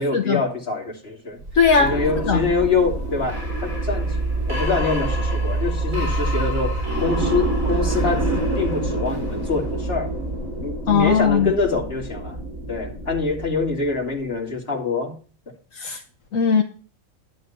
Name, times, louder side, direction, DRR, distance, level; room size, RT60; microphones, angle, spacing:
voice 1, 0.0-1.4 1.8-4.1 4.5-10.1 10.6-12.4 12.7-15.1, left 4 dB, 45° left, 0 dB, 3.0 m, -25 dB
sound 1, 1.4-14.2, right 2 dB, 80° right, 4.0 m, -26 dB
voice 2, 1.5-1.9 2.3-2.4 10.9-11.5 15.7-16.0 16.3-16.6, left 6 dB, 75° left, 4 dB, 1.4 m, -18 dB
11.5 x 8.8 x 4.2 m, 0.39 s
omnidirectional pair, 1.4 m